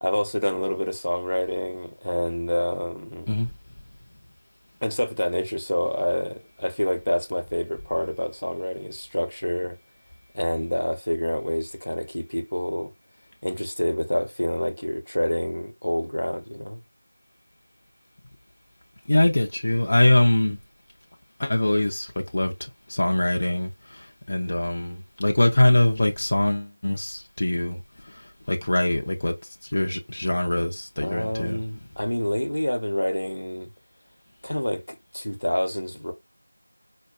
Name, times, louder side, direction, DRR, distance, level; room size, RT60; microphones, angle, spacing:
voice 1, 0.0-3.3 4.8-9.8 10.3-12.9 13.4-16.8 31.0-33.7 34.4-36.1, left 1 dB, 75° left, 0.6 m, -27 dB
voice 2, 19.1-20.6 21.4-27.8 28.0-31.6, left 1 dB, 30° left, 0.3 m, -23 dB
4.3 x 2.2 x 2.2 m
figure-of-eight pair, 175°, 0 cm